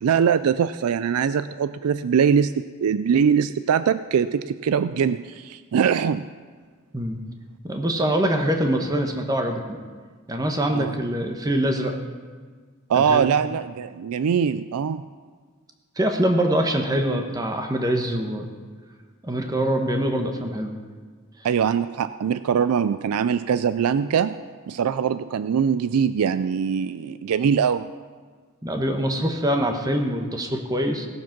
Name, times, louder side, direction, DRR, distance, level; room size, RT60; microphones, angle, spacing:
voice 1, 0.0-6.2 10.7-11.0 12.9-15.0 21.4-24.4 24.7-27.9, right 7 dB, 85° right, 13 dB, 0.4 m, -22 dB
voice 2, 7.6-9.6 10.3-12.0 12.9-13.3 16.0-18.5 19.2-20.7 28.6-31.1, right 1 dB, 15° right, 4 dB, 1.0 m, -24 dB
18.0 x 7.4 x 5.9 m, 1.6 s
head